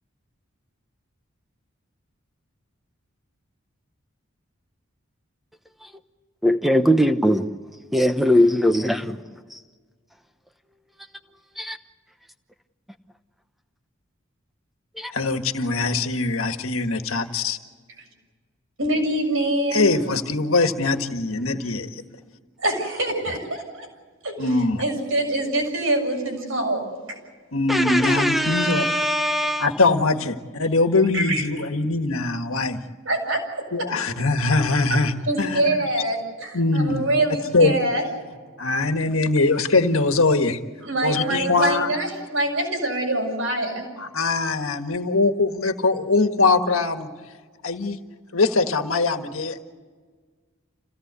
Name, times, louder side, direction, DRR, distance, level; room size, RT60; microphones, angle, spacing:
voice 1, 6.4-7.5 7.9-9.0 11.6-11.8 15.0-15.1 27.7-29.7, equal, ahead, 0.9 m, -20 dB
voice 2, 15.1-17.6 19.7-21.9 24.4-24.8 27.5-28.9 29.6-32.8 33.7-35.6 36.5-37.1 37.5-37.7 38.6-40.6 41.0-41.9 44.0-47.1 47.6-48.0 48.3-49.6, left 3 dB, 90° left, 1.6 m, -22 dB
voice 3, 18.8-19.9 22.6-23.9 24.2-24.5 24.8-27.2 31.1-31.4 33.1-33.6 35.3-38.1 40.8-43.9, right 1 dB, 75° right, 7.2 m, -25 dB
27.5 x 17.0 x 8.3 m
head